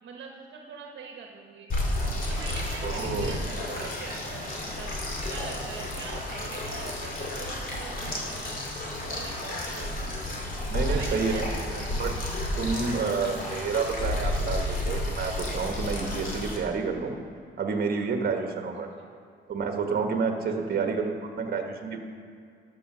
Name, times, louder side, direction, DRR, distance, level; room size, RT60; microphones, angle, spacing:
voice 1, 0.0-1.7 2.2-4.9 5.3-8.6 9.1-10.0 10.8-11.9 18.7-19.1 20.5-20.9, right 5 dB, 65° right, 1 dB, 1.1 m, -43 dB
sound 1, 1.7-16.6, left 1 dB, 45° left, 2.5 m, -31 dB
voice 2, 2.8-3.3 10.7-11.5 12.0-12.2 12.6-17.1 17.6-18.9 19.5-22.0, right 5 dB, 50° right, 4 dB, 1.3 m, -29 dB
13.0 x 5.8 x 6.1 m, 2.2 s
cardioid pair, 90°, 20 cm